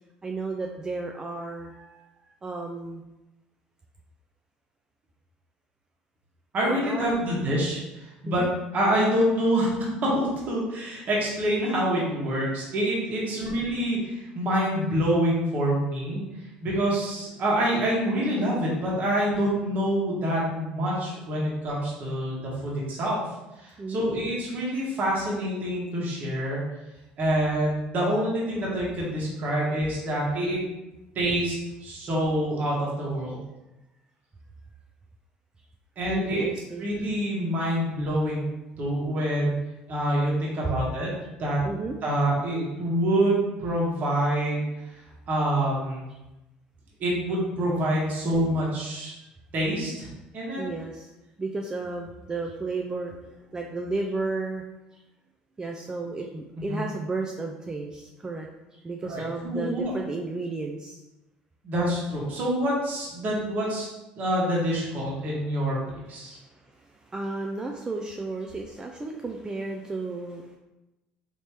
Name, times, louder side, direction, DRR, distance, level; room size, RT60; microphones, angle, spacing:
voice 1, 0.2-2.1 2.4-3.0 6.6-7.5 8.3-8.5 13.1-13.5 23.8-24.3 36.1-36.9 40.6-41.2 41.6-42.0 50.6-51.1 51.4-54.6 54.9-55.0 55.6-61.0 66.2-70.6, right 3 dB, 20° right, 2 dB, 0.3 m, -33 dB
voice 2, 6.5-8.4 8.7-9.7 10.0-16.2 16.6-23.2 23.6-26.6 27.2-30.6 31.1-31.5 31.8-33.4 36.0-36.4 36.8-38.4 38.8-39.5 39.9-41.1 41.4-41.6 42.0-44.6 45.3-46.0 47.0-49.1 49.5-50.1 50.3-50.6 56.7-56.8 59.0-59.9 61.6-63.9 64.2-65.8 66.1-66.4, right 1 dB, 50° right, -5 dB, 1.2 m, -26 dB
3.3 x 2.9 x 2.9 m, 0.99 s
supercardioid pair, 90°, 4 cm